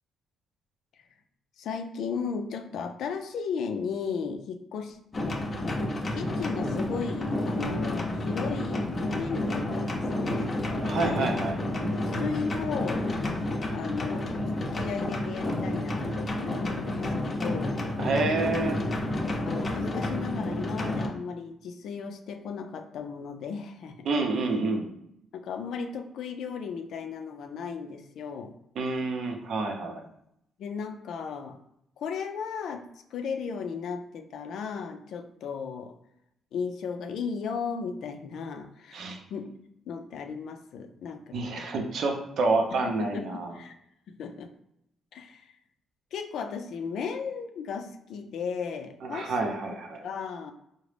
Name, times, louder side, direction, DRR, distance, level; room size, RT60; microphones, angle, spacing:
voice 1, 1.6-5.0 6.1-10.6 11.0-11.4 11.9-13.1 13.7-17.8 19.5-23.9 25.3-28.5 30.6-31.6 32.0-35.9 36.5-39.0 39.3-39.5 39.9-41.7 42.7-43.7 44.1-44.5 45.1-45.5 46.1-49.3 49.7-50.5, left 6 dB, 75° left, 6 dB, 0.4 m, -35 dB
sound 1, 5.1-21.1, left 1 dB, 35° left, 0.6 m, -30 dB
voice 2, 10.8-11.5 18.0-18.8 24.1-24.9 28.8-30.0 38.9-39.2 41.3-43.5 49.0-50.1, right 3 dB, 65° right, 3 dB, 0.6 m, -28 dB
3.8 x 2.1 x 3.3 m, 0.77 s
cardioid pair, 90°, 0 cm